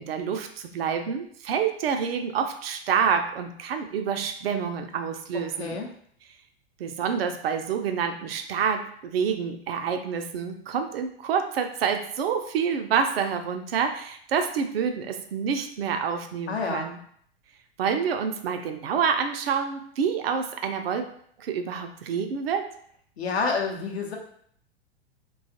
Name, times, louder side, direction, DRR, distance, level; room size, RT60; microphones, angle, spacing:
voice 1, 0.0-5.8 6.8-17.0 17.8-21.1 21.4-22.7, right 6 dB, 65° right, 6 dB, 0.4 m, -27 dB
voice 2, 5.6-5.9 16.5-16.8 23.2-24.2, left 4 dB, 75° left, 1 dB, 0.6 m, -28 dB
2.4 x 2.3 x 2.7 m, 0.63 s
figure-of-eight pair, 95°, 32 cm